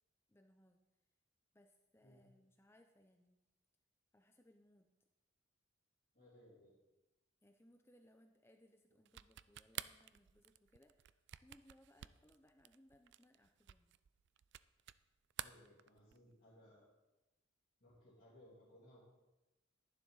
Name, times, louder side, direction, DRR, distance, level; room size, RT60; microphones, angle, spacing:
voice 1, 0.3-0.8 1.5-3.4 4.1-4.9 7.4-13.9, left 1 dB, 10° left, 5 dB, 0.6 m, -68 dB
voice 2, 6.1-6.7 15.4-16.9 17.8-19.0, left 1 dB, 40° left, -9 dB, 2.9 m, -63 dB
sound 1, 9.1-15.0 15.3-16.3, right 12 dB, 55° right, 0.3 m, -51 dB
12.0 x 11.0 x 4.0 m, 1.0 s
head